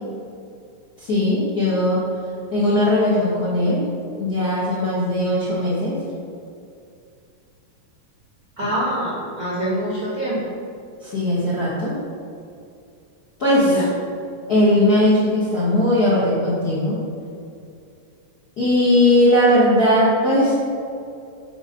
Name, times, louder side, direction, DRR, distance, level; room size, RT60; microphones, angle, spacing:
voice 1, 1.0-2.0 2.5-3.8 4.2-6.0 11.0-12.0 13.4-13.8 14.5-17.0 18.6-20.5, left 1 dB, 65° left, -9 dB, 0.9 m, -18 dB
voice 2, 8.6-10.5 13.6-13.8, right 1 dB, 80° right, -7 dB, 0.8 m, -25 dB
7.3 x 3.8 x 5.1 m, 2.5 s
omnidirectional pair, 3.9 m